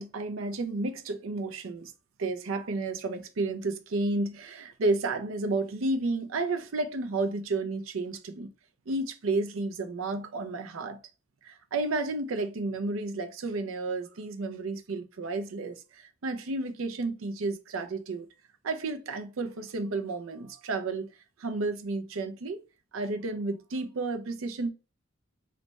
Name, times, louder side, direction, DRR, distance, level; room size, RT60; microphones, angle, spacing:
voice 1, 0.0-1.9 2.2-8.5 8.9-11.0 11.4-18.3 18.6-21.1 21.4-22.6 22.9-24.7, right 3 dB, 85° right, 0.5 m, -32 dB
3.2 x 2.2 x 4.0 m
head